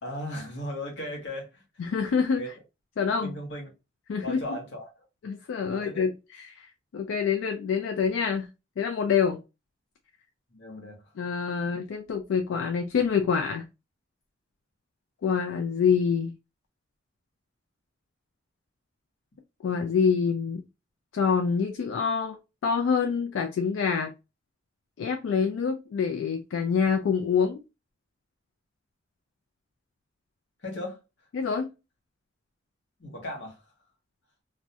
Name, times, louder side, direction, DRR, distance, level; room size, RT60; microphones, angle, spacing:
voice 1, 0.0-1.6 2.4-2.5 3.2-3.7 4.2-4.9 5.7-6.1 10.5-11.1 30.6-31.0 33.0-33.6, left 1 dB, 70° left, 0.9 m, -37 dB
voice 2, 1.8-2.4 3.0-3.3 4.1-4.4 5.2-6.1 6.4-6.7 6.9-8.5 8.8-9.4 11.2-13.7 15.2-16.3 19.6-20.6 21.1-22.4 22.6-24.1 25.0-27.6 31.3-31.7, left 6 dB, 85° left, 0.3 m, -26 dB
2.3 x 2.0 x 2.7 m
head